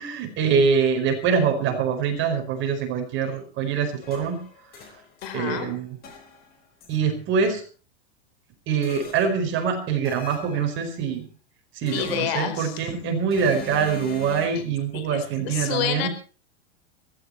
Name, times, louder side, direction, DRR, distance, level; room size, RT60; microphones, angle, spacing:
voice 1, 0.0-4.4 5.3-5.9 6.9-7.6 8.7-11.2 11.8-16.1, right 6 dB, 35° right, 4 dB, 5.0 m, -24 dB
sound 1, 4.0-5.7 6.0-7.0 8.8-9.5 10.0-10.9 11.9-12.7 13.3-14.5, left 8 dB, 25° left, 5.4 m, -42 dB
voice 2, 5.2-5.7 11.8-12.8 14.9-16.1, left 9 dB, 60° left, 10 dB, 4.4 m, -29 dB
17.0 x 15.5 x 4.5 m, 0.38 s
supercardioid pair, 140°, 33 cm